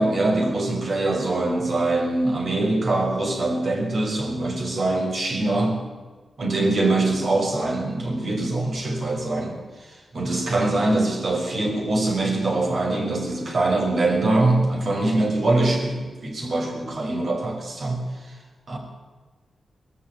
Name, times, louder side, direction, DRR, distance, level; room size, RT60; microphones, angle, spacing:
voice 1, 0.0-5.8 6.4-18.0 18.7-18.8, right 2 dB, 55° right, 1 dB, 5.6 m, -23 dB
20.5 x 14.0 x 9.5 m, 1.3 s
wide cardioid pair, 115°, 0 cm